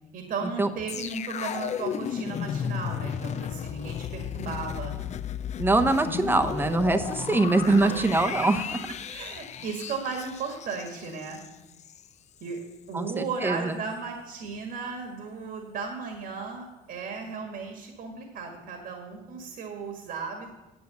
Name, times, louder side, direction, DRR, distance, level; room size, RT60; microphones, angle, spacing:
voice 1, 0.1-4.9 7.6-7.9 8.3-8.4 9.1-11.4 12.4-20.5, right 5 dB, 65° right, 4 dB, 1.8 m, -35 dB
sound 1, 0.9-12.1 12.4-12.6, left 9 dB, 45° left, 0.5 m, -34 dB
voice 2, 5.6-8.6 12.9-13.7, right 2 dB, 10° right, 8 dB, 0.8 m, -23 dB
10.5 x 6.4 x 6.8 m, 1.1 s
cardioid pair, 110°, 17 cm